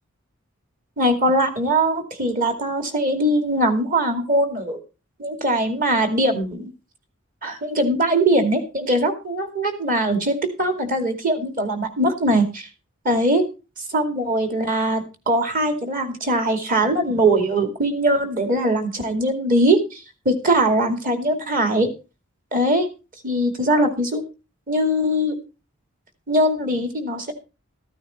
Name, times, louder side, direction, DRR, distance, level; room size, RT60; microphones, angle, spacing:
voice 1, 1.0-4.8 5.2-6.7 7.4-12.7 13.0-13.4 13.9-21.9 22.5-22.9 23.2-24.2 24.7-25.4 26.3-27.3, right 1 dB, 40° right, 6 dB, 2.4 m, -21 dB
14.5 x 9.2 x 4.3 m, 0.31 s
head